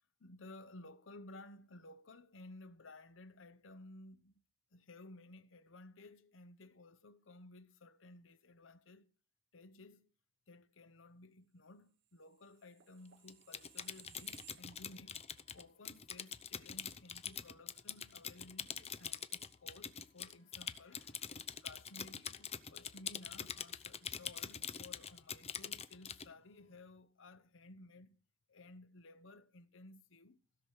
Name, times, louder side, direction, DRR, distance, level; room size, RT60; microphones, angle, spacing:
voice 1, 0.2-4.3 4.7-9.1 9.5-10.1 10.5-15.2 15.5-28.2 28.5-30.4, left 2 dB, 80° left, 0.9 m, -56 dB
sound 1, 12.3-15.2 15.6-15.7, right 10 dB, 65° right, 1.1 m, -62 dB
Typing, 13.3-26.3, left 8 dB, 35° left, 0.7 m, -44 dB
16.5 x 6.2 x 6.5 m
head